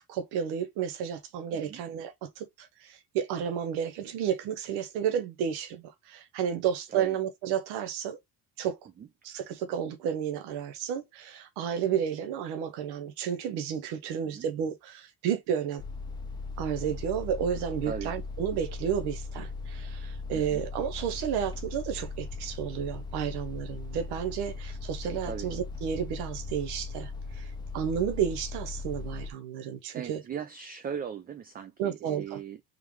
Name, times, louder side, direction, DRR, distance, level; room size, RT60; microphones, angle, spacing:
voice 1, 0.0-8.2 8.6-8.8 9.2-15.8 16.6-30.2 31.8-32.4, right 8 dB, 90° right, 0.9 m, -32 dB
sound 1, 15.8-29.3, left 3 dB, 10° left, 0.7 m, -38 dB
voice 2, 20.3-20.6 25.2-25.5 29.9-32.6, right 7 dB, 25° right, 0.4 m, -38 dB
3.7 x 3.3 x 3.1 m
cardioid pair, 110°, 38 cm